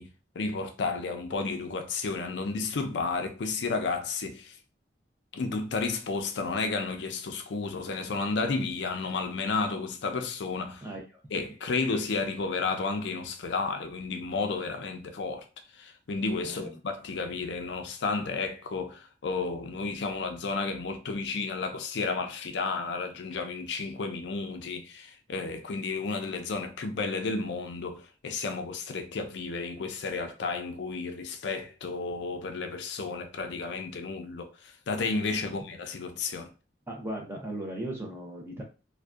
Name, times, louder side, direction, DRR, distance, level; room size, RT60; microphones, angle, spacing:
voice 1, 0.0-4.5 5.3-10.8 11.3-15.4 15.8-34.5 34.9-36.5, left 4 dB, 85° left, 0.4 m, -32 dB
voice 2, 16.4-16.8 35.4-35.6 36.9-38.6, right 1 dB, 15° right, 0.6 m, -37 dB
2.5 x 2.2 x 2.3 m
head